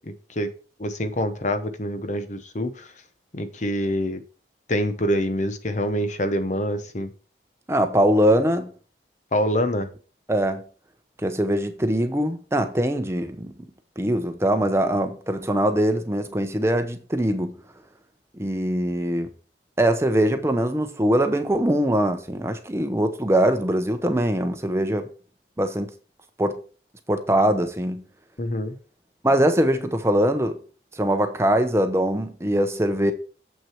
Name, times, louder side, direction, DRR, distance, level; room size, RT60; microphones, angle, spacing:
voice 1, 0.8-2.9 3.3-4.2 4.7-7.1 9.3-9.9 28.4-28.8, equal, 40° left, 0.9 m, -25 dB
voice 2, 7.7-8.7 10.3-10.6 11.2-13.5 14.0-17.5 18.4-19.3 19.8-25.1 25.6-25.9 26.4-26.5 27.1-28.0 29.2-30.6 31.0-33.1, right 1 dB, 15° right, 0.8 m, -22 dB
7.6 x 6.1 x 4.5 m
head